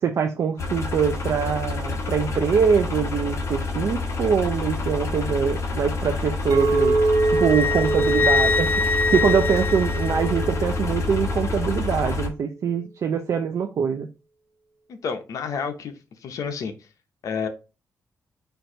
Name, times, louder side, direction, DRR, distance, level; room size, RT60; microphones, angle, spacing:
voice 1, 0.0-7.0 7.3-8.7 9.1-14.1, right 6 dB, 65° right, 0.5 m, -23 dB
sound 1, 0.6-12.3, left 3 dB, 55° left, 1.0 m, -28 dB
Chink clink, 6.5-11.7, right 2 dB, 85° right, 1.2 m, -25 dB
Wind instrument woodwind instrument, 7.1-10.6, left 4 dB, 30° left, 0.4 m, -25 dB
voice 2, 14.9-15.9 16.2-16.7 17.2-17.5, left 6 dB, 80° left, 0.8 m, -29 dB
4.5 x 2.6 x 4.4 m
cardioid pair, 95°, 6 cm